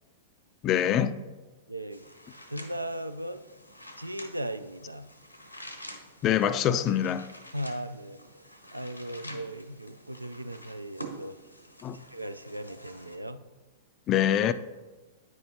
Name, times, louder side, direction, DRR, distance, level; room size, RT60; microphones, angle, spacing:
voice 1, 0.6-1.2 6.2-7.3 11.8-12.0 14.1-14.5, left 10 dB, 30° left, 0.3 m, -24 dB
voice 2, 1.7-2.0 2.5-3.5 4.0-5.1 7.5-8.2 8.7-11.4 11.9-13.4, right 1 dB, 85° right, 0.3 m, -37 dB
sound 1, 1.9-13.2, right 1 dB, 90° left, 0.7 m, -47 dB
9.3 x 5.3 x 2.8 m
figure-of-eight pair, 100°, 0 cm